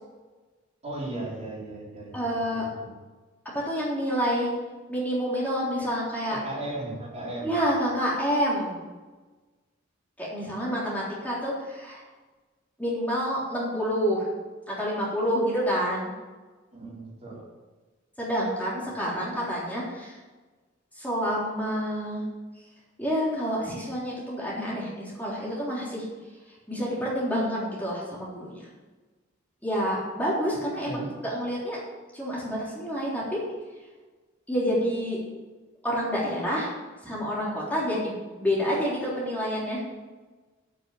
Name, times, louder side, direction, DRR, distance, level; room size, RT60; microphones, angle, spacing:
voice 1, 0.8-2.9 6.3-7.6 16.7-17.4 30.8-31.1, right 2 dB, 35° right, -5 dB, 4.1 m, -36 dB
voice 2, 2.1-2.6 3.5-4.5 4.9-6.4 7.4-8.8 10.2-12.0 12.8-14.3 14.7-16.1 18.2-20.2 21.0-22.2 23.0-26.1 26.7-28.7 29.6-31.8 32.1-33.4 34.5-35.2 35.8-36.7 37.0-39.8, equal, 10° left, -7 dB, 3.6 m, -28 dB
9.8 x 8.8 x 7.2 m, 1.3 s
head